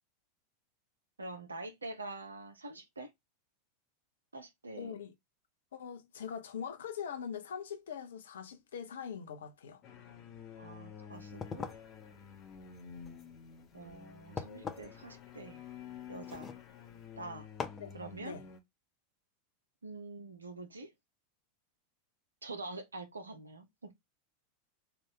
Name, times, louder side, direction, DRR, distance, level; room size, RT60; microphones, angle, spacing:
voice 1, 1.2-3.1 4.3-4.9 10.6-11.7 13.7-15.6 16.1-16.5 17.2-17.5 17.9-18.4 19.8-20.9 22.4-23.9, right 2 dB, 80° right, 0.8 m, -45 dB
voice 2, 4.8-5.1 5.7-9.8 17.8-17.9 18.2-18.4, left 7 dB, 65° left, 0.7 m, -42 dB
sound 1, 9.8-18.6, left 7 dB, 35° left, 0.9 m, -50 dB
sound 2, 11.2-17.1 17.6-17.9, left 5 dB, 20° left, 0.5 m, -45 dB
3.4 x 2.5 x 3.7 m
figure-of-eight pair, 85°, 0 cm